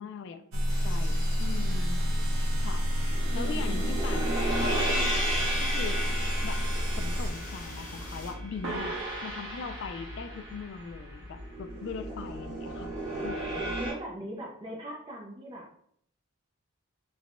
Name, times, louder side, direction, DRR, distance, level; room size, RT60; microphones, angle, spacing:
voice 1, 0.0-2.1 2.6-5.2 5.6-6.0 6.4-6.6 7.0-12.9 13.2-13.8, left 5 dB, 60° left, 9 dB, 0.3 m, -40 dB
sound 1, 0.5-7.3, equal, 85° right, 0.5 m, -29 dB
sound 2, 0.7-8.3, left 1 dB, 40° left, 1.0 m, -44 dB
sound 3, 3.0-13.9, right 1 dB, 65° right, 1.1 m, -34 dB
voice 2, 3.3-3.8 12.4-13.3 13.8-15.6, right 1 dB, 25° right, -2 dB, 0.4 m, -41 dB
3.3 x 2.1 x 2.4 m, 0.67 s
head